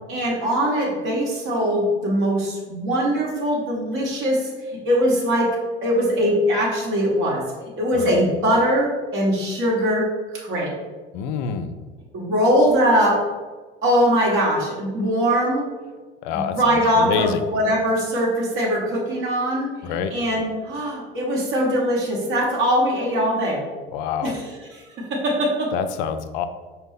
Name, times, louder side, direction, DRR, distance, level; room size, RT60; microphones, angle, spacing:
voice 1, 0.1-4.5 4.8-5.6 5.8-7.4 7.8-10.1 10.3-10.7 12.1-13.2 13.8-15.7 16.3-19.7 20.1-23.6 24.2-24.8 25.1-25.7, equal, 45° right, -4 dB, 1.2 m, -21 dB
voice 2, 11.1-11.7 16.2-16.5 17.0-17.4 19.8-20.1 23.9-24.3 25.7-26.5, left 8 dB, 55° left, 9 dB, 0.4 m, -26 dB
5.1 x 2.3 x 3.4 m, 1.3 s
figure-of-eight pair, 65°, 30 cm